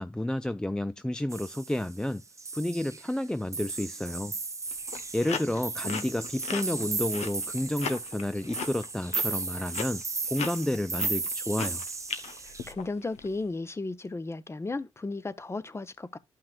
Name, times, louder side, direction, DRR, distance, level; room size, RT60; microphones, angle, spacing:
voice 1, 0.0-2.2 2.5-4.3 5.1-10.0 10.3-11.8, left 1 dB, 5° left, 0.3 m, -30 dB
sound 1, 1.3-2.0 2.4-3.2 3.5-12.7, right 4 dB, 25° right, 0.8 m, -35 dB
sound 2, 4.7-13.3, left 7 dB, 75° left, 1.1 m, -37 dB
voice 2, 12.5-16.2, left 3 dB, 25° left, 0.8 m, -35 dB
12.0 x 5.7 x 2.3 m
cardioid pair, 75°, 11 cm